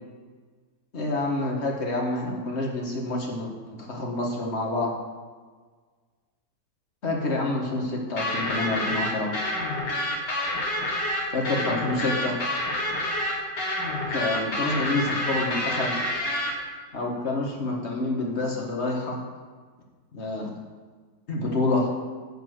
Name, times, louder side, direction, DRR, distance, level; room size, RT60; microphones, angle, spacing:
voice 1, 0.9-4.9 7.0-9.3 11.3-12.4 14.1-16.0 16.9-19.2 20.1-20.5 21.3-21.9, left 2 dB, 45° left, -1 dB, 1.7 m, -28 dB
sound 1, 8.2-16.5, left 1 dB, 90° left, 2.4 m, -28 dB
10.5 x 4.5 x 7.7 m, 1.5 s
omnidirectional pair, 1.8 m